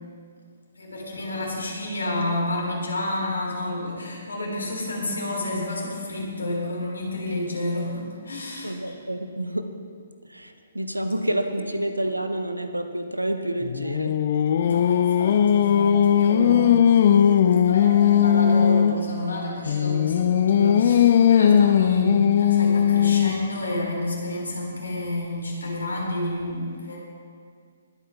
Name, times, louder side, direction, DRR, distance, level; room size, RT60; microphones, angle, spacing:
voice 1, 0.8-9.0 14.6-16.8 17.7-27.0, left 1 dB, 70° left, -2 dB, 3.3 m, -30 dB
voice 2, 8.6-9.7 10.3-14.1, right 1 dB, 85° right, 7 dB, 1.0 m, -28 dB
Singing, 13.6-19.0 19.7-23.5, left 8 dB, 45° left, 0.4 m, -18 dB
21.5 x 8.6 x 3.4 m, 2.1 s
figure-of-eight pair, 130°, 0 cm